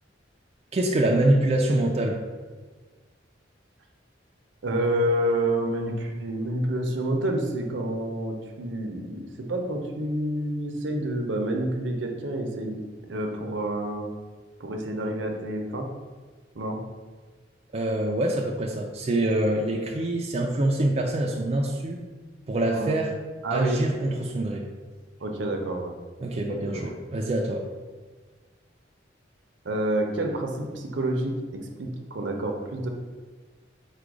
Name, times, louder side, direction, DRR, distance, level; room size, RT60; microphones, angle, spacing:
voice 1, 0.7-2.2 17.7-22.0 22.5-23.1 23.5-24.7 26.2-27.6, right 1 dB, 35° right, 0 dB, 0.4 m, -25 dB
voice 2, 4.6-9.2 9.5-12.8 13.1-14.1 14.6-15.9 16.5-16.8 22.7-22.9 23.4-23.8 25.2-25.9 26.5-26.9 29.6-32.9, right 1 dB, 70° right, 3 dB, 0.6 m, -28 dB
4.9 x 2.2 x 4.7 m, 1.4 s
head